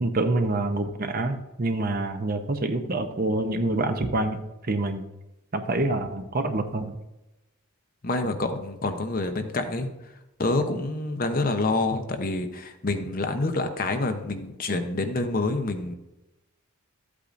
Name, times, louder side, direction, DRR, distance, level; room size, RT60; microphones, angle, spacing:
voice 1, 0.0-4.4 4.7-5.0 5.5-7.0, right 2 dB, 40° right, 7 dB, 0.7 m, -26 dB
voice 2, 8.0-9.9 10.4-16.0, left 2 dB, 40° left, 6 dB, 0.8 m, -27 dB
13.0 x 8.4 x 2.6 m, 0.95 s
head